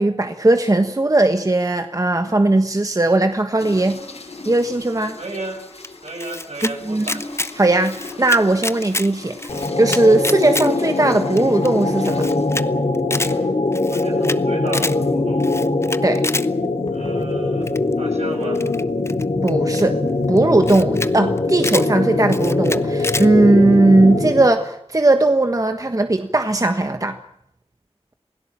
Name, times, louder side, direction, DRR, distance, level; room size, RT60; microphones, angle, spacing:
voice 1, 0.0-4.0 4.4-5.2 6.8-7.1 7.6-12.3 16.0-16.2 19.4-20.0 20.3-27.2, right 2 dB, 30° right, 7 dB, 1.4 m, -18 dB
sound 1, 3.6-12.5 13.1-13.4 14.0-14.2 14.9-15.1 15.9-16.1, left 3 dB, 80° left, 7.9 m, -38 dB
voice 2, 5.2-5.6 6.0-7.2 13.9-15.5 16.9-18.6, right 1 dB, 75° right, 2 dB, 7.1 m, -33 dB
Camera, 5.8-6.7 7.0-7.5 7.8-9.1 9.4-10.7 11.0-11.1 11.4-11.5 11.7-11.8 12.1-12.6 12.9-13.3 13.7-14.4 14.7-15.0 15.4-16.5 17.7-17.9 18.6-19.8 20.4-20.5 20.6-21.1 21.4-21.9 22.3-23.3, left 2 dB, 25° left, 0.8 m, -27 dB
sound 2, 9.5-24.6, left 2 dB, 60° left, 3.0 m, -22 dB
27.5 x 17.0 x 7.5 m, 0.77 s
wide cardioid pair, 75°, 11 cm